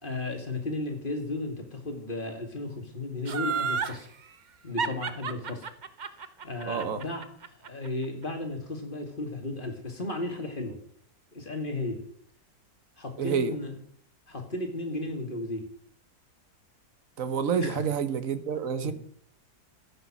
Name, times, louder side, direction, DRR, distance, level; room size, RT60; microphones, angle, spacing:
voice 1, 0.0-4.1 4.6-5.7 6.4-7.3 7.6-10.8 11.3-12.0 13.0-13.7 14.3-15.7 17.6-17.8 18.8-18.9, left 2 dB, 30° left, 2.3 m, -34 dB
Laughter, 3.3-4.0 4.8-7.9 8.2-8.3, right 5 dB, 80° right, 0.4 m, -31 dB
voice 2, 6.6-7.0 13.2-13.5 17.2-18.9, right 7 dB, 55° right, 1.3 m, -28 dB
13.5 x 9.3 x 6.1 m
omnidirectional pair, 2.0 m